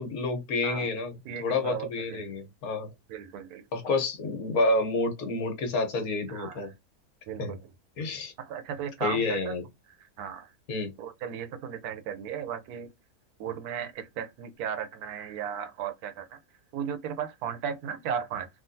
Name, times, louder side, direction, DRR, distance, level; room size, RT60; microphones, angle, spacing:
voice 1, 0.0-2.9 3.7-6.7 7.4-7.6 8.0-8.3 9.0-9.6 10.7-10.9, left 3 dB, 70° left, 1.4 m, -29 dB
voice 2, 1.3-2.3 3.1-3.6 6.3-6.6 7.3-7.6 8.4-9.6 10.2-10.5 11.0-12.9 13.4-16.4 16.7-18.5, right 8 dB, 80° right, 1.1 m, -35 dB
3.7 x 2.3 x 2.5 m
omnidirectional pair, 1.6 m